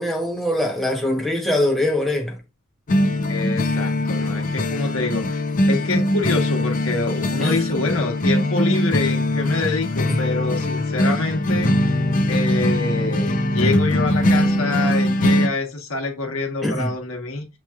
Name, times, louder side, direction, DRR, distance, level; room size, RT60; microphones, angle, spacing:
voice 1, 0.0-2.4 7.4-7.7 10.1-10.2 16.6-16.9, left 1 dB, ahead, 0.9 m, -22 dB
sound 1, 2.9-15.5, left 1 dB, 35° left, 0.4 m, -21 dB
voice 2, 3.3-11.9 12.3-17.5, left 3 dB, 70° left, 1.1 m, -26 dB
6.6 x 3.0 x 2.3 m
head